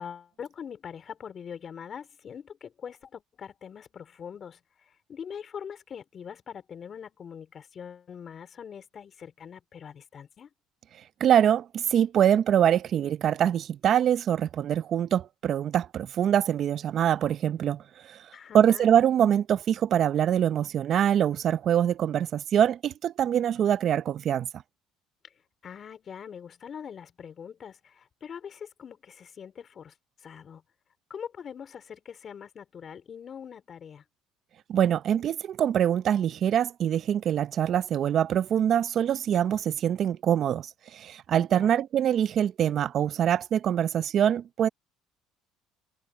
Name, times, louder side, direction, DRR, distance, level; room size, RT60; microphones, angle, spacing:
voice 1, 0.0-4.6 5.1-10.5 18.3-18.9 25.6-29.9 30.2-30.6 31.1-34.0 41.3-41.7, left 7 dB, 45° left, 4.6 m, -43 dB
voice 2, 11.2-17.8 18.5-24.5 34.7-40.7 40.9-44.7, right 9 dB, 55° right, 0.7 m, -24 dB
supercardioid pair, 90°, 0 cm